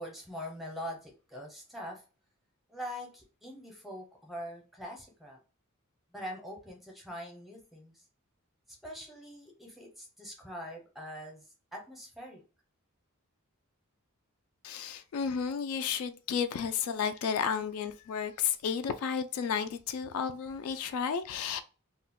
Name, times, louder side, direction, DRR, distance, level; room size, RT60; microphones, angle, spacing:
voice 1, 0.0-2.0 2.7-5.4 6.1-8.0 8.7-12.4, equal, ahead, 0.7 m, -43 dB
voice 2, 14.6-21.6, left 7 dB, 70° left, 0.3 m, -32 dB
2.3 x 2.2 x 3.6 m
head